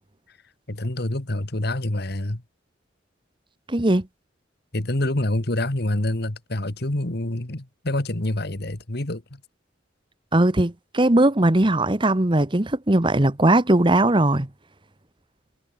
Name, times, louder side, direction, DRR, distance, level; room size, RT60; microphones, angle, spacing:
voice 1, 0.7-2.4 4.7-9.4, left 1 dB, 55° left, 2.0 m, -26 dB
voice 2, 3.7-4.1 10.3-14.5, right 1 dB, 25° right, 1.2 m, -19 dB
head